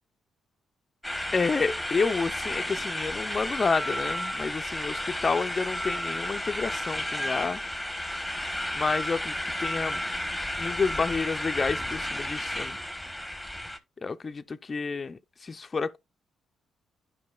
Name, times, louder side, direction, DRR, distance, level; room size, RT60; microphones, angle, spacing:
sound 1, 1.0-13.8, left 1 dB, ahead, 1.2 m, -32 dB
voice 1, 1.3-7.6 8.7-10.0 10.6-12.8 14.0-16.0, left 4 dB, 35° left, 0.5 m, -29 dB
11.5 x 5.0 x 2.3 m
cardioid pair, 90°, 0 cm